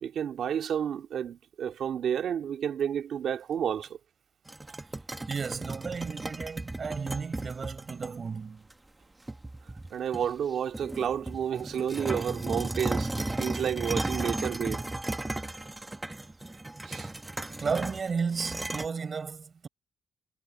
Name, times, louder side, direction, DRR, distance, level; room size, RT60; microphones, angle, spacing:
voice 1, 0.0-3.9 9.9-14.8 16.9-17.1, right 8 dB, 50° right, 2.4 m, -31 dB
sound 1, 4.5-8.1 8.7-8.8 9.3-10.4 10.7-18.9, right 2 dB, 10° right, 1.2 m, -35 dB
voice 2, 5.3-8.6 17.6-19.7, right 5 dB, 25° right, 7.3 m, -33 dB
cardioid pair, 175°, 0 cm